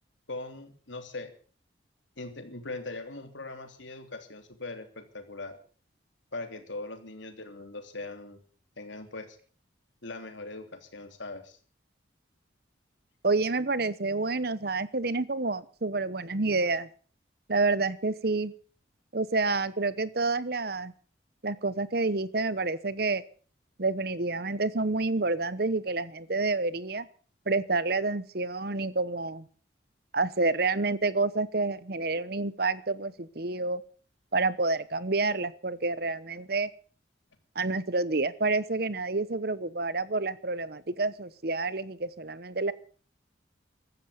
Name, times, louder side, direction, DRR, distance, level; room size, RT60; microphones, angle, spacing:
voice 1, 0.3-1.3 2.2-5.6 6.3-8.4 8.8-9.4 10.0-11.6, left 2 dB, 75° left, 7 dB, 3.2 m, -40 dB
voice 2, 13.2-16.9 17.5-18.5 19.1-20.9 21.4-23.2 23.8-27.1 27.5-29.4 30.1-33.8 34.3-36.7 37.5-42.7, right 3 dB, 55° right, 17 dB, 1.0 m, -28 dB
15.5 x 13.0 x 6.8 m, 0.42 s
head